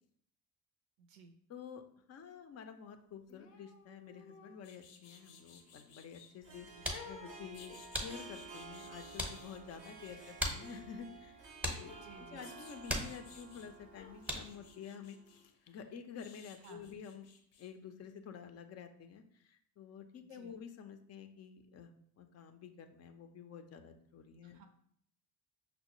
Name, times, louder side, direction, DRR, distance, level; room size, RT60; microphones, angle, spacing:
voice 1, 1.0-1.3 6.7-6.9 10.2-10.3 12.0-12.5 13.6-13.7 16.6-17.0 20.2-20.6 24.4-24.7, right 4 dB, 50° right, 7 dB, 0.5 m, -58 dB
voice 2, 1.5-1.8 2.1-17.3 17.6-21.9 22.2-24.6, left 7 dB, 35° left, 7 dB, 0.5 m, -50 dB
sound 1, 3.3-6.3 6.9-10.8 11.6-13.7 14.0-17.7 18.0-18.1, left 5 dB, 85° left, 0.7 m, -57 dB
Harp, 5.1-15.5, right 3 dB, 85° right, 0.8 m, -53 dB
sound 2, 6.4-14.7, equal, 5° right, 0.7 m, -43 dB
5.7 x 2.0 x 2.9 m, 0.67 s
hypercardioid pair, 65°, 47 cm